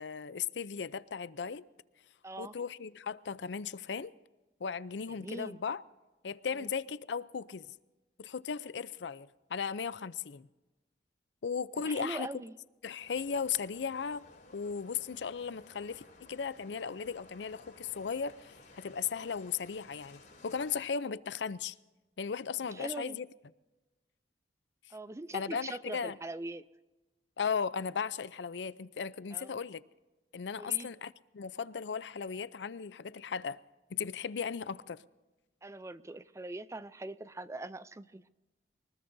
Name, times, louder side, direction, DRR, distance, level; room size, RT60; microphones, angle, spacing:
voice 1, 0.0-1.7 2.4-4.1 4.6-5.8 6.2-7.7 8.2-10.5 11.4-12.3 12.8-14.3 14.5-21.8 22.2-23.3 25.3-26.2 27.4-29.8 30.3-33.6 33.9-35.0, left 6 dB, 80° left, 0.5 m, -36 dB
voice 2, 2.2-2.5 5.2-5.6 11.8-12.5 22.7-23.2 24.9-26.7 29.3-29.6 30.6-30.9 35.6-38.3, right 2 dB, 15° right, 0.4 m, -42 dB
sound 1, 13.0-20.8, left 2 dB, 45° left, 6.2 m, -57 dB
23.5 x 20.5 x 2.7 m
head